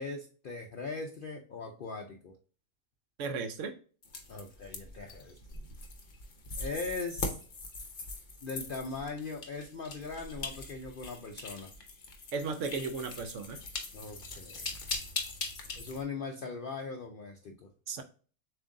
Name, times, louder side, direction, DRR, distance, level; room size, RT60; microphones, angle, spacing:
voice 1, 0.0-2.4 4.3-5.6 6.6-7.4 8.4-11.7 13.9-15.0 15.7-17.7, left 4 dB, 65° left, 0.5 m, -40 dB
voice 2, 3.2-3.8 12.3-13.6 17.9-18.0, right 4 dB, 65° right, 0.9 m, -35 dB
sound 1, 4.0-16.0, left 3 dB, 45° left, 0.8 m, -41 dB
7.1 x 2.6 x 2.5 m
omnidirectional pair, 1.5 m